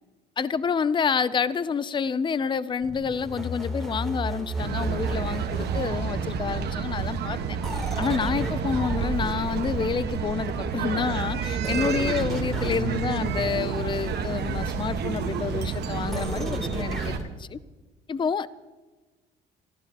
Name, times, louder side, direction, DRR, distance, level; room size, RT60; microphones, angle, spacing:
voice 1, 0.4-7.6 8.0-17.6 18.1-18.5, left 6 dB, 25° left, 17 dB, 0.5 m, -28 dB
sound 1, 2.8-6.5 7.6-10.7 11.6-17.2, right 1 dB, ahead, 3.2 m, -35 dB
sound 2, 4.6-17.2, right 6 dB, 60° right, 1.5 m, -29 dB
24.5 x 15.0 x 3.0 m, 1.3 s
cardioid pair, 90°, 19 cm